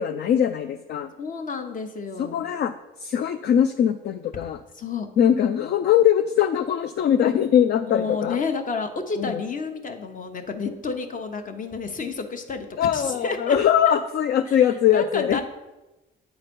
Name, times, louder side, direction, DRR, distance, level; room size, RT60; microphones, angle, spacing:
voice 1, 0.0-1.1 2.2-2.7 3.0-4.6 5.2-8.4 9.2-9.4 12.8-15.4, left 9 dB, 60° left, 8 dB, 0.4 m, -21 dB
voice 2, 1.2-2.4 4.8-5.1 7.8-13.6 14.5-14.6 14.9-15.4, left 4 dB, 40° left, 6 dB, 1.0 m, -30 dB
9.0 x 4.0 x 5.3 m, 1.0 s
cardioid pair, 90°, 20 cm